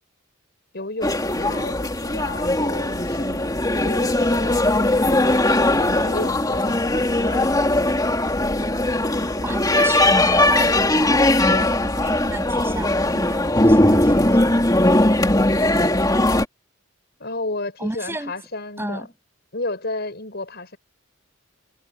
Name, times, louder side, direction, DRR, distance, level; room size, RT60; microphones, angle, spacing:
voice 1, 0.7-3.6 3.8-5.4 5.8-7.9 9.1-9.5 11.4-11.7 15.3-15.8 17.2-19.1 19.5-20.8, left 2 dB, 50° left, 6.8 m, -33 dB
sound 1, 1.0-16.4, left 1 dB, 20° left, 3.0 m, -19 dB
voice 2, 9.4-14.6 17.8-18.3 18.8-19.1, right 1 dB, 10° right, 6.8 m, -31 dB
head